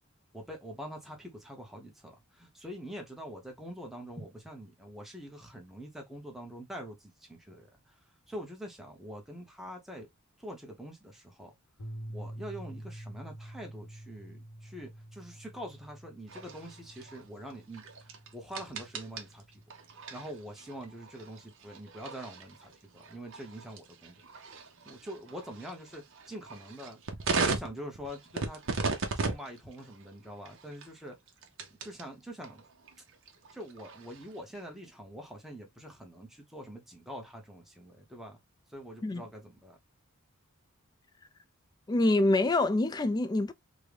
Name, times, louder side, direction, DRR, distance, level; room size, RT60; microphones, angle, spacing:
voice 1, 0.3-7.9 8.3-10.1 10.4-11.5 12.1-19.4 20.1-24.2 24.9-27.0 27.3-28.6 29.1-31.2 31.7-32.6 33.5-38.4 38.7-39.8, equal, ahead, 0.9 m, -44 dB
sound 1, 11.8-20.2, right 1 dB, 85° left, 1.0 m, -47 dB
sound 2, 16.3-32.1 32.4-34.6, right 4 dB, 60° right, 0.7 m, -38 dB
voice 2, 41.9-43.5, left 2 dB, 20° left, 0.3 m, -26 dB
3.6 x 2.2 x 3.3 m
head